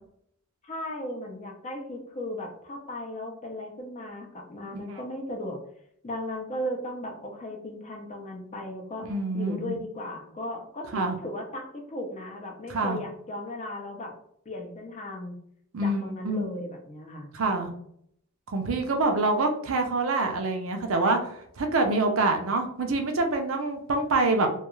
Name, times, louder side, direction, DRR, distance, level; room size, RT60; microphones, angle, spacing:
voice 1, 0.6-5.6 6.0-9.1 9.3-14.1 14.5-15.4 15.8-17.3, left 1 dB, 35° left, 2 dB, 0.5 m, -36 dB
voice 2, 9.1-9.8 10.9-11.2 12.7-13.0 15.7-16.5 17.3-17.7 18.5-21.2 21.6-24.5, right 2 dB, 70° right, 4 dB, 0.5 m, -26 dB
2.3 x 2.3 x 3.0 m, 0.69 s
head